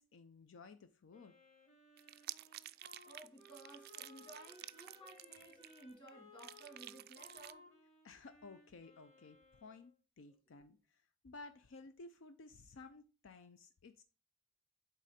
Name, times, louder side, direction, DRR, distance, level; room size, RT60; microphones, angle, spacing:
voice 1, 0.0-1.3 8.0-14.0, left 3 dB, 70° left, 0.5 m, -56 dB
Wind instrument woodwind instrument, 1.1-10.0, left 2 dB, 40° left, 2.4 m, -62 dB
sound 1, 2.0-6.1 6.4-7.5, right 14 dB, 50° right, 0.3 m, -51 dB
voice 2, 3.0-7.7, right 1 dB, 25° left, 2.0 m, -56 dB
8.4 x 3.7 x 4.2 m
head